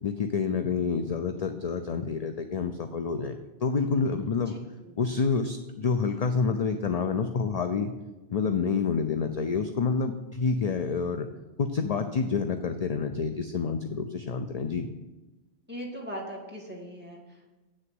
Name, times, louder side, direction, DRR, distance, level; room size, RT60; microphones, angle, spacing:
voice 1, 0.0-4.6 5.0-7.9 8.3-11.3 11.6-14.9, left 5 dB, 45° left, 7 dB, 0.6 m, -28 dB
voice 2, 4.5-5.0 15.7-17.6, equal, 10° right, -3 dB, 2.0 m, -40 dB
8.3 x 6.5 x 7.7 m, 1.1 s
omnidirectional pair, 1.1 m